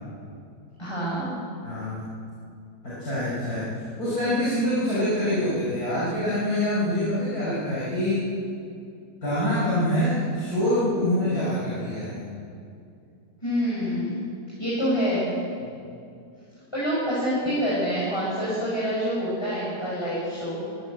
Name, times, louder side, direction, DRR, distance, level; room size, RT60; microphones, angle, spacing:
voice 1, 0.8-1.4 13.4-14.2 14.6-15.3 16.7-20.6, equal, 15° left, -8 dB, 6.3 m, -26 dB
voice 2, 1.6-2.0 2.8-3.6 4.0-8.2 9.2-12.2 15.6-15.8, left 1 dB, 65° left, -9 dB, 6.2 m, -25 dB
23.5 x 14.5 x 8.2 m, 2.5 s
omnidirectional pair, 1.7 m